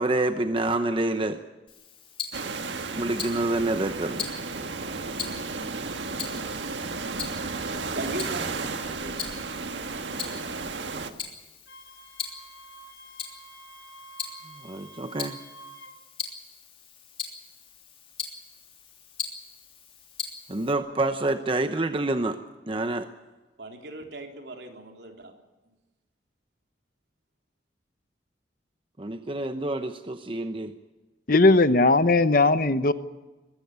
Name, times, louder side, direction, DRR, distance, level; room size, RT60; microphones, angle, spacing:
voice 1, 0.0-1.4 3.0-4.3 14.6-15.4 20.5-22.4 22.7-23.1 29.0-30.7, right 2 dB, 30° right, 8 dB, 0.9 m, -27 dB
Tick-tock, 1.7-20.7, left 7 dB, 30° left, 3.2 m, -41 dB
sound 1, 2.3-11.1, right 4 dB, 90° right, 1.7 m, -33 dB
voice 2, 7.9-9.2 23.6-25.3, right 2 dB, 70° right, 3 dB, 3.5 m, -39 dB
Wind instrument woodwind instrument, 11.7-15.9, right 2 dB, 70° left, 2.7 m, -48 dB
voice 3, 31.3-32.9, left 2 dB, 50° left, 13 dB, 1.0 m, -18 dB
21.5 x 15.5 x 9.6 m, 1.2 s
head